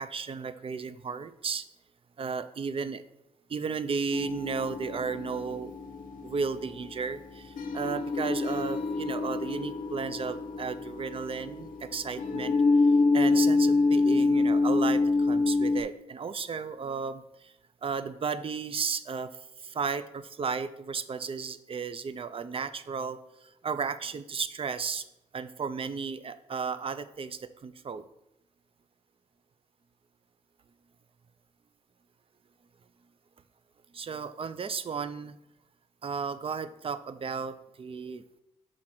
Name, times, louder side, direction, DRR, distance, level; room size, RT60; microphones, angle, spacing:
voice 1, 0.0-1.6 2.2-3.0 3.5-5.7 6.2-12.6 13.1-17.5 17.8-19.3 19.6-25.0 25.3-28.0 33.9-35.4 36.0-38.2, right 5 dB, 40° right, 12 dB, 0.5 m, -34 dB
sound 1, 4.1-15.8, left 3 dB, 75° left, 0.7 m, -27 dB
6.0 x 3.8 x 5.8 m, 0.87 s
cardioid pair, 75°, 14 cm